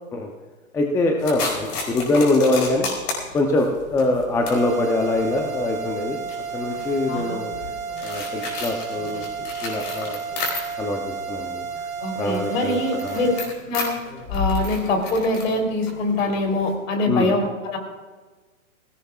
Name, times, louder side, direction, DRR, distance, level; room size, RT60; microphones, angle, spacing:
voice 1, 0.7-2.9 3.3-6.2 6.5-7.5 8.0-9.3 9.6-10.2 10.8-11.6 12.2-13.2 17.1-17.3, left 2 dB, 10° left, 2 dB, 0.6 m, -23 dB
sound 1, 1.2-11.0 11.3-16.7, left 3 dB, 40° left, 4.6 m, -33 dB
sound 2, 4.5-13.5, right 6 dB, 85° right, 1.5 m, -32 dB
voice 2, 7.1-7.4 12.0-13.3 13.7-14.0 14.3-17.8, left 2 dB, 65° left, 3 dB, 3.5 m, -24 dB
20.0 x 17.0 x 2.4 m, 1.3 s
hypercardioid pair, 140°, 41 cm